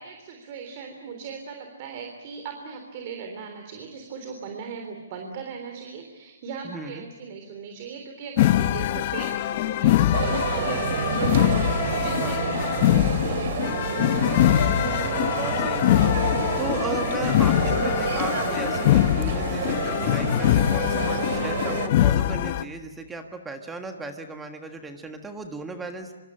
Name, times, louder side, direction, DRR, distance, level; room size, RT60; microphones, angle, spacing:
voice 1, 0.0-13.4, right 6 dB, 40° right, 4 dB, 3.6 m, -39 dB
voice 2, 6.6-7.0 12.1-12.4 14.1-14.5 15.0-16.1 16.6-26.1, right 3 dB, 10° right, 5 dB, 1.6 m, -36 dB
sound 1, 8.4-22.6, left 13 dB, 40° left, 0.8 m, -23 dB
sound 2, 10.1-21.9, right 7 dB, 55° right, 2.3 m, -29 dB
25.5 x 25.0 x 9.0 m, 1.1 s
hypercardioid pair, 160°, 0 cm